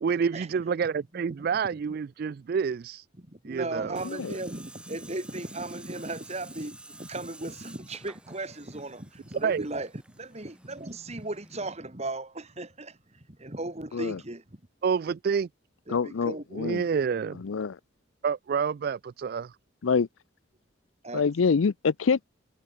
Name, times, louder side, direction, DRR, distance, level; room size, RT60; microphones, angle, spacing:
voice 1, 0.0-3.0 3.4-4.0 9.4-9.7 14.8-15.5 16.5-17.4 18.2-19.6, right 6 dB, 50° right, 0.3 m, -28 dB
voice 2, 3.2-14.4 15.9-16.4 21.0-21.3, right 2 dB, 35° right, 2.2 m, -37 dB
Tools, 4.0-11.7, right 2 dB, 5° right, 4.3 m, -50 dB
voice 3, 15.9-16.8 17.4-17.8 19.8-20.1 21.1-22.2, left 5 dB, 85° left, 0.5 m, -26 dB
head